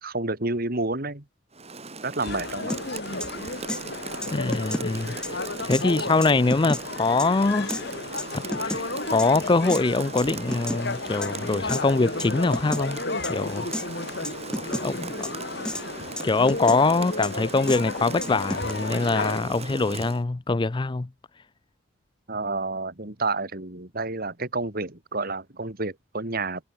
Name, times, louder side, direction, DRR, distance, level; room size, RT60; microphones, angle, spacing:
voice 1, 0.0-1.2 2.0-2.7 22.3-26.6, right 3 dB, 45° right, 2.5 m, -29 dB
Rain, 1.5-20.2, right 3 dB, 30° right, 6.3 m, -39 dB
sound 1, 2.2-19.4, left 3 dB, 55° left, 3.1 m, -33 dB
sound 2, 2.7-2.8 3.2-3.3 3.7-3.8 4.2-4.9 5.2-5.3 5.7-5.8 6.2-6.8 7.2-7.3 7.7-7.8 8.2-8.8 9.2-9.3 9.7-9.8 10.2-10.8 11.2-11.3 11.7-11.8 12.2-12.3 12.5-12.8 13.2-13.3 13.7-13.8 14.2-14.8 15.2-15.3 15.6-15.8 16.2-16.8 17.2-17.3 17.7-17.8 18.2-18.7, left 1 dB, 5° left, 2.2 m, -31 dB
voice 2, 4.3-5.2 5.6-7.8 8.3-13.7 14.8-15.3 16.2-21.1, left 3 dB, 25° left, 0.4 m, -23 dB
head